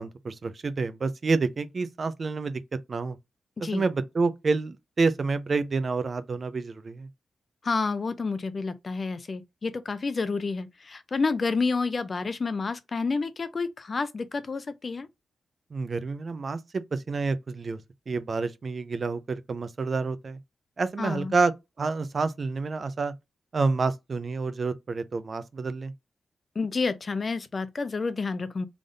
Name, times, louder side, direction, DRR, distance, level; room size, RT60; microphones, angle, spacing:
voice 1, 0.0-2.6 2.9-3.2 3.7-7.1 15.7-17.8 18.1-20.4 20.8-21.5 21.8-23.1 23.5-25.9, right 4 dB, 45° right, 0.5 m, -28 dB
voice 2, 7.6-15.1 21.0-21.3 26.6-28.7, left 4 dB, 40° left, 0.5 m, -29 dB
3.4 x 2.5 x 3.8 m
cardioid pair, 90°, 0 cm